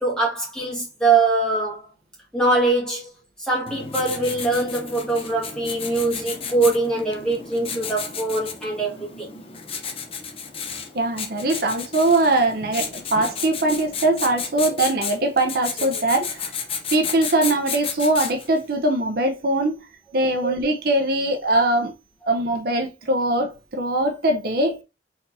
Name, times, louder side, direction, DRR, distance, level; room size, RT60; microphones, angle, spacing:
voice 1, 0.0-1.9 2.3-3.1 3.4-9.3 20.4-20.5, right 3 dB, 5° left, 1.8 m, -23 dB
Writing, 3.7-18.6, left 6 dB, 30° left, 0.7 m, -33 dB
voice 2, 10.9-16.5 16.9-19.9 20.1-21.9 22.3-24.8, right 2 dB, 55° right, 0.7 m, -22 dB
4.3 x 4.0 x 2.7 m
head